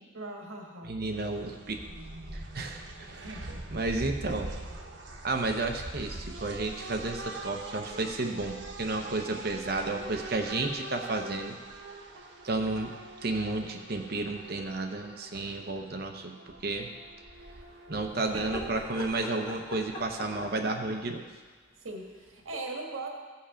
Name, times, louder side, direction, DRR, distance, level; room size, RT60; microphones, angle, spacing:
voice 1, 0.1-0.9 3.1-3.6 18.3-18.5 21.8-23.1, right 3 dB, 90° right, 1 dB, 1.7 m, -39 dB
voice 2, 0.8-1.8 2.3-3.4 3.7-4.5 5.2-11.5 12.4-12.9 13.2-16.9 17.9-21.3, right 2 dB, 50° right, 4 dB, 0.7 m, -32 dB
sound 1, 1.1-20.1, right 2 dB, 65° right, 1.2 m, -43 dB
sound 2, 18.1-21.2 22.5-22.6, left 1 dB, 25° left, 1.7 m, -42 dB
15.0 x 5.6 x 5.0 m, 1.4 s
head